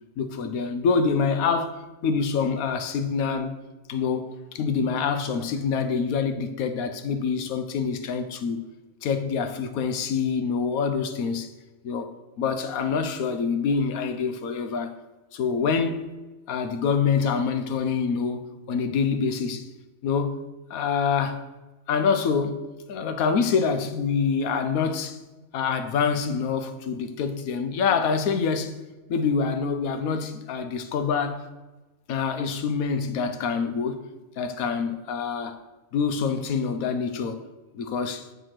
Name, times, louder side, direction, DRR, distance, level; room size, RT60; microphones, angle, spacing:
voice 1, 0.2-3.5 3.9-8.6 9.0-11.5 11.8-12.1 12.4-14.9 15.3-16.0 16.5-19.7 20.0-20.4 20.7-21.4 21.9-22.6 22.9-25.2 25.5-28.7 29.1-31.4 32.1-34.0 34.4-35.6 35.9-37.4 37.7-38.3, left 5 dB, 85° left, 1.2 m, -26 dB
6.7 x 4.7 x 5.9 m
omnidirectional pair, 1.4 m